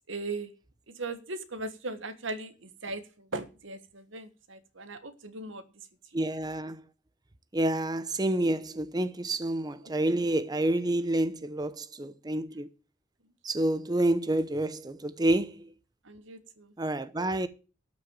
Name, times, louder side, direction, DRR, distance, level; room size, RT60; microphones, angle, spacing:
voice 1, 0.1-0.5 0.9-5.6 6.1-6.2 9.8-10.3 16.0-16.7, right 2 dB, 85° right, 1.5 m, -39 dB
voice 2, 6.1-6.8 7.5-12.7 13.4-15.7 16.8-17.5, right 1 dB, 20° right, 0.7 m, -28 dB
12.5 x 6.3 x 8.5 m
head